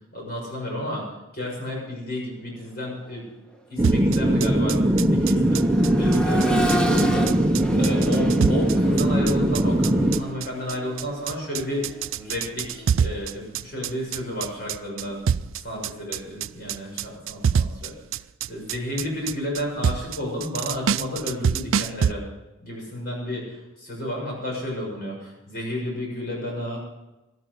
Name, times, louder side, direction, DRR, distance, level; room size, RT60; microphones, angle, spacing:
voice 1, 0.1-1.1 1.3-3.2 3.7-5.6 5.9-15.2 15.6-17.9 18.5-22.2 22.6-26.8, left 1 dB, 50° left, -1 dB, 6.6 m, -32 dB
Accelerating revving vroom, 2.9-3.1 3.5-13.4 15.1-15.2, right 1 dB, 5° left, 1.3 m, -34 dB
sound 1, 3.8-10.2, right 1 dB, 15° right, 0.8 m, -20 dB
sound 2, 3.8-22.1, right 7 dB, 80° right, 0.4 m, -26 dB
18.5 x 12.5 x 5.4 m, 1.0 s
head